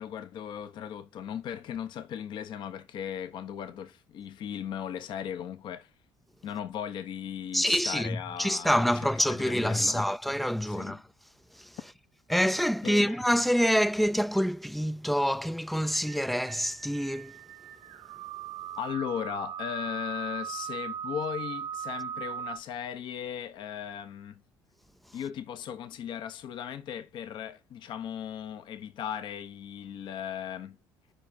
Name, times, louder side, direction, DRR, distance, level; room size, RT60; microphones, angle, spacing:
voice 1, 0.0-5.9 6.4-10.1 10.7-11.0 12.8-13.2 18.8-24.4 25.1-30.8, left 9 dB, 65° left, 0.9 m, -37 dB
voice 2, 7.5-11.0 11.6-11.7 12.3-17.3, equal, ahead, 0.3 m, -26 dB
sound 1, 16.1-22.6, right 8 dB, 80° right, 0.6 m, -39 dB
5.0 x 4.1 x 5.3 m
supercardioid pair, 70°, 9 cm